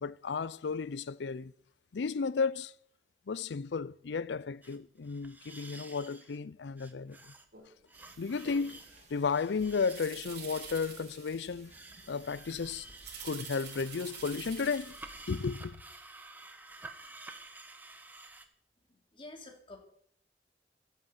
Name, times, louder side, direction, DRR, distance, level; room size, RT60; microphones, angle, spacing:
voice 1, 0.0-1.5 1.9-2.7 3.3-7.3 8.2-8.8 9.1-11.7 12.1-12.9 13.2-15.0 15.3-15.8, left 5 dB, 85° left, 0.5 m, -33 dB
sound 1, 4.6-4.8 5.0-6.4 6.8-7.4 7.8-10.9 11.7-18.4, right 2 dB, 10° right, 1.1 m, -51 dB
sound 2, 7.5-7.6 8.4-8.7 9.6-11.6 13.0-15.3 15.6-15.7, right 7 dB, 75° right, 4.4 m, -47 dB
sound 3, 7.9-15.5, right 4 dB, 40° right, 2.3 m, -58 dB
voice 2, 19.1-19.8, left 2 dB, 30° left, 2.9 m, -48 dB
13.0 x 9.3 x 7.9 m
head